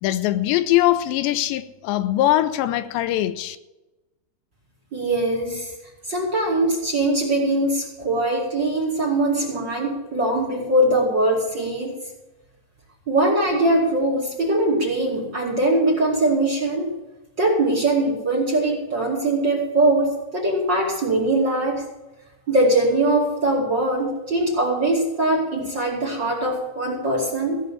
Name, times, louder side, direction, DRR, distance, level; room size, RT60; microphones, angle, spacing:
voice 1, 0.0-3.6, left 14 dB, 90° left, 2.9 m, -21 dB
voice 2, 4.9-5.7 6.0-11.9 13.1-16.9 17.4-21.8 22.5-27.6, right 1 dB, 30° right, 2.4 m, -21 dB
16.0 x 6.3 x 8.5 m
omnidirectional pair, 5.0 m